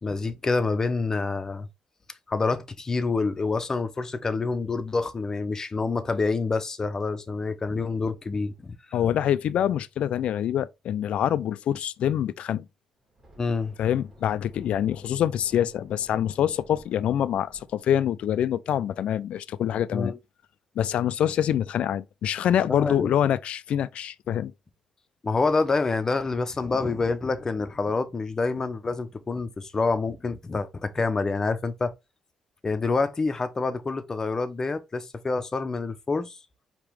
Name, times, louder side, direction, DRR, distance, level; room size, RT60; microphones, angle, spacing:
voice 1, 0.0-1.7 2.3-8.8 13.4-13.7 19.9-20.2 22.7-23.1 25.2-31.9 32.6-36.4, left 3 dB, 25° left, 0.7 m, -27 dB
sound 1, 7.6-9.1 13.0-17.8, right 2 dB, 25° right, 2.5 m, -54 dB
voice 2, 8.9-12.6 13.8-20.1 20.8-24.5, left 10 dB, 65° left, 0.4 m, -25 dB
4.9 x 2.9 x 3.5 m
cardioid pair, 115°, 2 cm